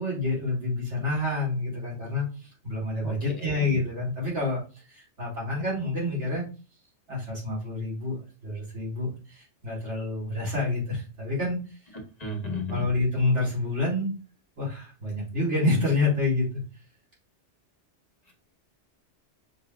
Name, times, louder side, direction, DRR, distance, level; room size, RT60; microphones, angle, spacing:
voice 1, 0.0-4.6 4.9-6.4 7.1-11.6 12.7-14.1 14.6-16.5, left 2 dB, 75° right, -6 dB, 2.8 m, -28 dB
voice 2, 3.0-3.5 12.2-12.9 18.3-18.4, left 2 dB, 35° left, 0 dB, 1.4 m, -33 dB
6.2 x 3.0 x 2.4 m, 0.34 s
omnidirectional pair, 1.2 m